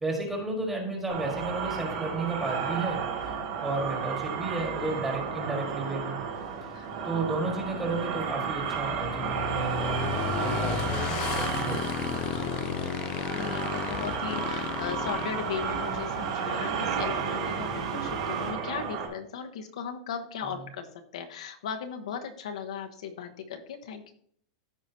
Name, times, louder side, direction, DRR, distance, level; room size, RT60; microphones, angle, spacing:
voice 1, 0.0-3.0 3.6-6.2 7.0-12.4, right 3 dB, 10° right, 0 dB, 1.7 m, -33 dB
sound 1, 1.1-19.1, right 7 dB, 55° right, 2.2 m, -33 dB
voice 2, 2.6-2.9 6.7-7.2 9.2-9.4 12.4-20.9 21.1-24.1, left 7 dB, 80° left, 5 dB, 1.1 m, -38 dB
Motorcycle / Engine, 6.3-16.0, left 11 dB, 30° left, 0.4 m, -35 dB
sound 2, 12.8-18.5, right 4 dB, 85° right, 2.2 m, -42 dB
14.0 x 4.9 x 2.8 m, 0.63 s
supercardioid pair, 175°, 3 cm